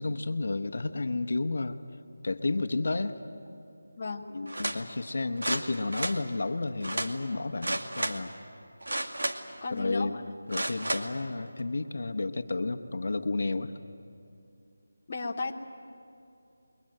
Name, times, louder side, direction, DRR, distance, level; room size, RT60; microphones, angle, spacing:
voice 1, 0.0-1.8 2.2-3.2 4.3-8.3 9.7-10.2 10.5-13.7, left 3 dB, 50° left, 7 dB, 1.1 m, -31 dB
voice 2, 4.0-4.3 9.6-10.2 15.1-15.5, left 3 dB, 25° left, -1 dB, 1.0 m, -34 dB
sound 1, 4.5-4.8 5.4-6.2 6.8-7.1 7.6-8.2 8.8-9.5 10.5-11.1 11.6-11.7, right 1 dB, 80° right, 2.2 m, -32 dB
28.5 x 22.5 x 7.9 m, 2.7 s
figure-of-eight pair, 175°, 0 cm